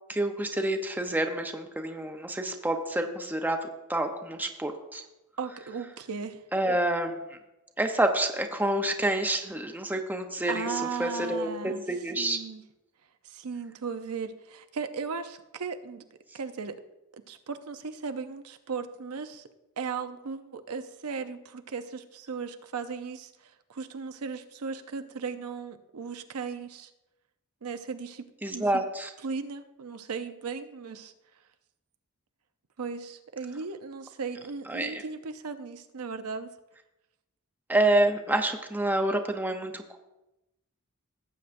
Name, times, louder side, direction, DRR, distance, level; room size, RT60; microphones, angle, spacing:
voice 1, 0.1-5.0 6.5-7.4 7.8-12.4 28.4-29.1 34.7-35.0 37.7-40.0, right 1 dB, 10° right, 5 dB, 0.7 m, -28 dB
voice 2, 5.4-6.4 10.5-11.8 12.2-12.6 13.2-16.0 16.3-16.8 17.3-19.4 19.8-26.9 27.6-28.8 29.2-31.1 32.8-36.5, right 5 dB, 80° right, 8 dB, 0.6 m, -36 dB
17.5 x 7.8 x 2.6 m, 0.96 s
head